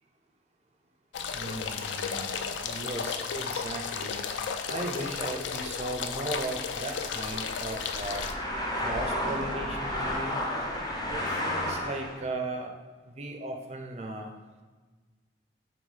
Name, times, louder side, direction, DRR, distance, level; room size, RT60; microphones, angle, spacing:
sound 1, 1.1-8.3, left 6 dB, 75° left, 0.3 m, -34 dB
voice 1, 1.3-4.2 4.7-8.3 8.8-10.4 11.1-12.7 13.1-14.3, right 2 dB, 35° right, 3 dB, 0.4 m, -37 dB
sound 2, 5.2-12.3, left 1 dB, 20° left, 0.5 m, -33 dB
5.9 x 2.2 x 3.9 m, 1.3 s
head